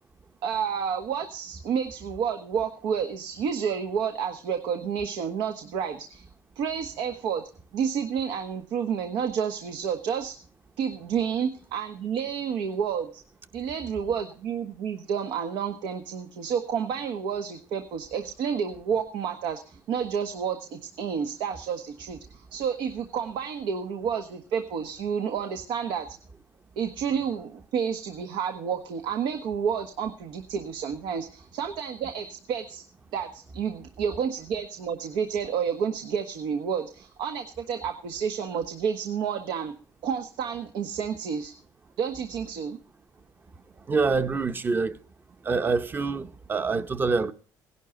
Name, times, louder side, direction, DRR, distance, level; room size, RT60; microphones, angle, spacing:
voice 1, 0.4-6.3 6.6-7.4 7.7-10.4 10.8-13.2 13.5-26.1 26.8-32.8 33.1-39.7 40.0-41.5 42.0-42.8, right 7 dB, 80° right, 1.4 m, -30 dB
voice 2, 43.9-45.0 45.4-47.3, right 4 dB, 25° right, 0.9 m, -26 dB
17.5 x 11.0 x 3.9 m
cardioid pair, 115°, 8 cm